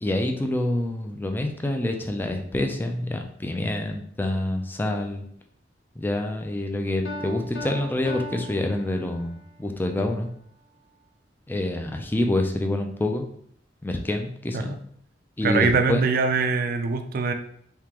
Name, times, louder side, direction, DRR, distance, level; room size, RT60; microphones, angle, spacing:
voice 1, 0.0-5.2 6.0-10.3 11.5-13.2 13.8-14.8 15.4-16.0, left 1 dB, 10° left, 4 dB, 0.4 m, -27 dB
Piano, 7.0-9.5, left 1 dB, 70° left, 0.5 m, -38 dB
voice 2, 15.4-17.3, right 4 dB, 55° right, 6 dB, 0.4 m, -23 dB
3.6 x 2.9 x 3.0 m, 0.66 s
head